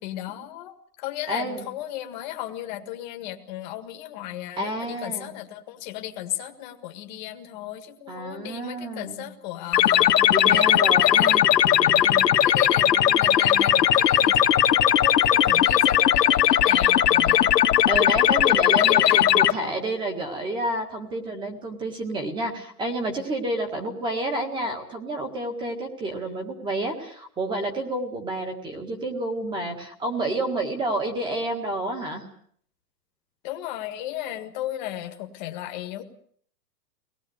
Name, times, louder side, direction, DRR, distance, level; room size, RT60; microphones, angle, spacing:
voice 1, 0.0-11.4 11.8-17.5 18.8-19.3 33.4-36.0, left 13 dB, 25° left, 6 dB, 1.7 m, -35 dB
voice 2, 1.3-1.7 4.6-5.3 8.1-9.3 10.3-12.1 17.9-32.3, right 1 dB, 10° right, 5 dB, 1.8 m, -30 dB
sound 1, 9.7-19.5, left 11 dB, 70° left, 1.8 m, -18 dB
24.0 x 19.0 x 8.0 m, 0.62 s
hypercardioid pair, 175°, 49 cm